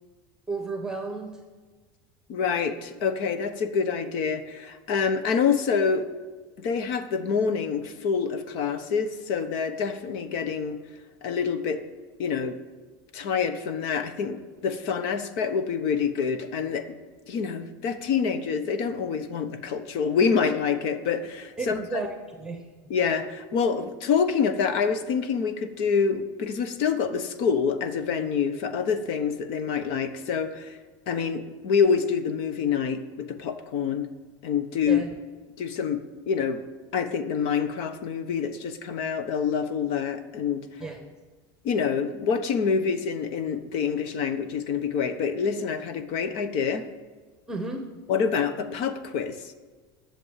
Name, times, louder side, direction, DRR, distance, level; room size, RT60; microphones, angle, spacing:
voice 1, 0.5-1.3 21.6-22.6 34.9-35.1 40.8-41.1 47.5-47.8, right 3 dB, 5° right, 4 dB, 1.1 m, -33 dB
voice 2, 2.3-6.1 6.6-10.8 11.2-11.8 12.2-12.6 13.1-17.0 17.3-22.0 22.9-30.8 31.1-34.1 34.4-35.0 35.6-36.6 36.9-40.7 41.6-46.8 48.1-49.5, left 6 dB, 65° left, 10 dB, 1.1 m, -26 dB
11.0 x 7.1 x 7.4 m, 1.4 s
cardioid pair, 140°, 10 cm